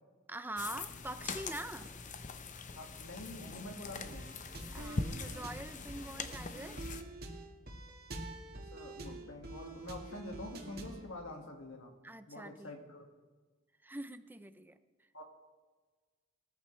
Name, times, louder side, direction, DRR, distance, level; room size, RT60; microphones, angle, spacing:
voice 1, 0.3-1.9 4.7-6.9 12.0-12.7 13.8-14.8, right 2 dB, 10° right, 11 dB, 0.5 m, -44 dB
sound 1, 0.6-7.0, left 4 dB, 40° left, 0.7 m, -42 dB
voice 2, 2.7-4.3 8.7-12.0 12.3-13.1 15.1-15.2, left 1 dB, 90° left, 2 dB, 2.1 m, -46 dB
sound 2, 4.1-11.1, right 1 dB, 55° right, 2.0 m, -46 dB
18.5 x 14.0 x 3.3 m, 1.4 s
head